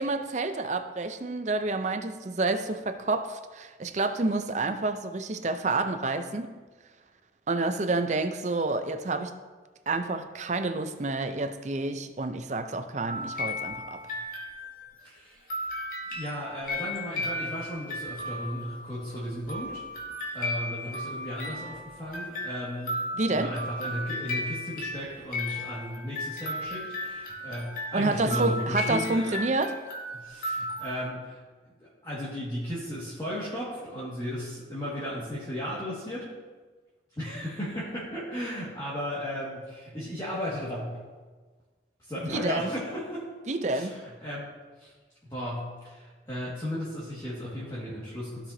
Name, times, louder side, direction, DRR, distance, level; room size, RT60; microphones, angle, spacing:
voice 1, 0.0-6.5 7.5-9.3 9.9-14.0 23.1-23.6 27.9-29.8 42.3-42.7 43.5-44.0, right 2 dB, 40° right, 0.5 m, -29 dB
sound 1, 13.1-15.0 15.5-31.1, left 1 dB, 45° left, 1.6 m, -35 dB
voice 2, 15.0-15.5 16.1-19.8 20.3-29.4 30.1-31.4 32.0-36.3 37.2-41.0 42.0-43.3 43.7-44.5 44.8-44.9 45.2-48.5, equal, 20° left, 1.8 m, -35 dB
15.5 x 5.9 x 2.7 m
head